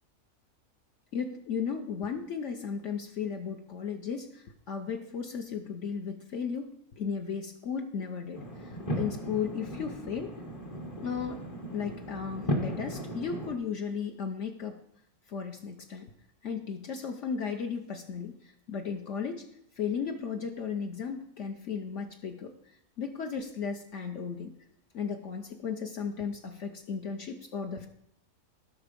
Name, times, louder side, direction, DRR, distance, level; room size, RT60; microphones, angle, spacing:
voice 1, 1.1-10.3 11.0-11.4 11.7-14.8 15.3-16.1 16.4-19.5 19.8-22.5 23.0-24.5 24.9-27.9, left 6 dB, 60° left, 5 dB, 1.0 m, -35 dB
sound 1, 8.3-13.6, equal, 30° left, 0.9 m, -36 dB
12.0 x 5.9 x 5.1 m, 0.76 s
omnidirectional pair, 1.5 m